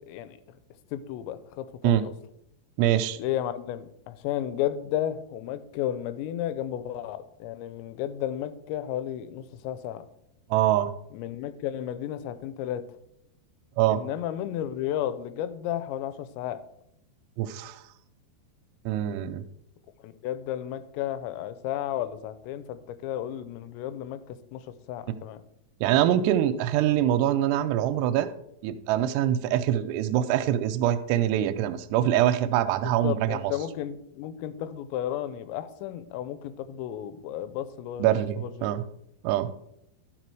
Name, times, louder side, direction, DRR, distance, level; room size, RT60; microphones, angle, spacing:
voice 1, 0.1-0.4 0.9-2.1 3.2-10.1 11.1-12.9 13.9-16.6 20.0-24.6 24.9-25.4 32.8-38.1 38.4-38.7, left 11 dB, 85° left, 13 dB, 2.9 m, -33 dB
voice 2, 2.8-3.2 10.5-10.9 13.8-14.0 17.4-17.8 18.9-19.4 25.8-28.3 28.6-33.5 38.0-38.8 39.2-39.5, right 12 dB, 80° right, 10 dB, 2.6 m, -24 dB
12.5 x 4.9 x 4.6 m, 0.77 s
omnidirectional pair, 5.1 m